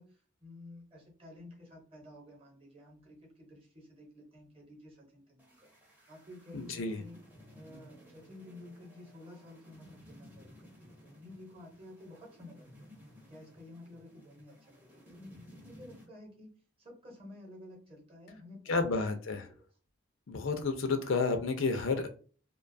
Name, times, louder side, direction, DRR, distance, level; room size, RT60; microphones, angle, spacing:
voice 1, 0.0-5.7 6.1-7.2 7.5-12.9 13.3-19.0 19.4-19.6, left 1 dB, 30° right, -1 dB, 0.9 m, -52 dB
sound 1, 5.4-16.1, equal, 10° right, 0.6 m, -57 dB
voice 2, 6.5-7.0 18.7-19.5 20.3-22.1, left 4 dB, 70° left, 7 dB, 0.5 m, -31 dB
2.5 x 2.2 x 2.5 m, 0.38 s
head